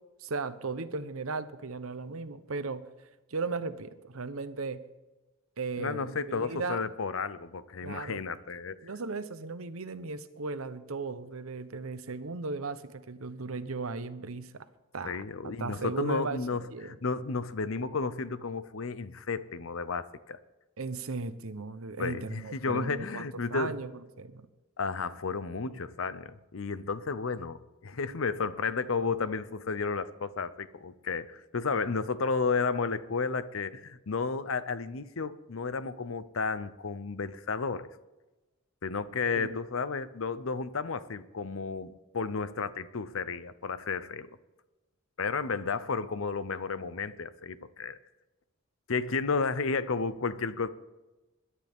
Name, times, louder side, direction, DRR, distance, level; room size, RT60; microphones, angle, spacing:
voice 1, 0.2-2.9 3.3-4.8 5.6-6.8 7.8-8.2 8.8-14.7 14.9-17.0 20.8-23.9 24.2-24.5 39.4-39.6, right 3 dB, 85° right, 12 dB, 0.9 m, -36 dB
voice 2, 5.8-8.8 15.0-20.4 22.0-23.8 24.8-37.9 38.8-44.4 45.2-48.0 48.9-50.7, left 4 dB, 75° left, 14 dB, 0.7 m, -32 dB
21.5 x 11.5 x 3.6 m, 1.1 s
head